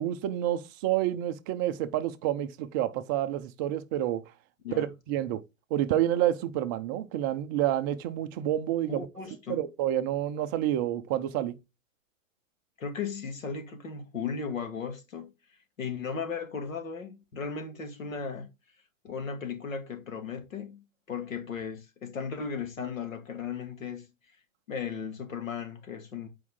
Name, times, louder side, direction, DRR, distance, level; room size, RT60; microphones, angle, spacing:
voice 1, 0.0-4.2 4.8-5.4 5.7-9.1 9.5-11.6, right 12 dB, 20° right, 0.3 m, -29 dB
voice 2, 8.9-9.6 12.8-15.3 15.8-18.5 19.0-24.1 24.7-26.3, left 6 dB, 80° left, 2.3 m, -36 dB
8.3 x 4.8 x 3.6 m
hypercardioid pair, 125°, 39 cm